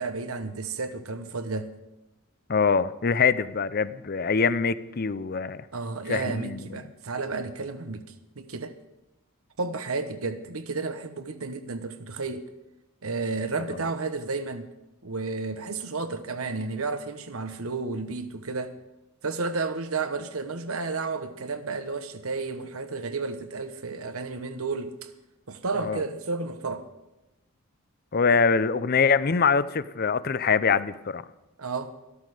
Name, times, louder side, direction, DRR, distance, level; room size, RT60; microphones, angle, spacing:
voice 1, 0.0-1.7 5.7-8.0 8.4-8.7 9.6-12.4 13.0-14.7 15.0-18.8 19.2-25.1 25.5-26.9 31.6-31.9, right 3 dB, 80° right, 10 dB, 1.1 m, -32 dB
voice 2, 2.5-5.6 6.1-6.8 13.7-13.8 25.8-26.0 28.1-31.2, left 5 dB, 45° left, 15 dB, 0.6 m, -24 dB
14.5 x 13.0 x 4.9 m, 0.99 s
head